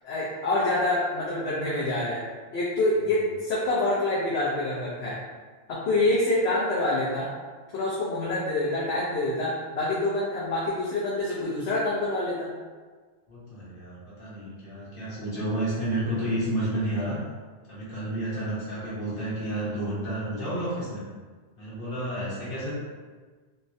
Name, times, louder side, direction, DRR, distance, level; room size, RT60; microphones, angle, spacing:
voice 1, 0.0-2.2 2.5-5.2 5.7-7.3 7.7-12.5, left 2 dB, 70° left, -7 dB, 0.9 m, -26 dB
voice 2, 13.3-17.2 17.7-21.0 21.6-22.7, right 1 dB, 50° left, -10 dB, 1.3 m, -31 dB
3.2 x 2.1 x 2.6 m, 1.4 s
omnidirectional pair, 1.2 m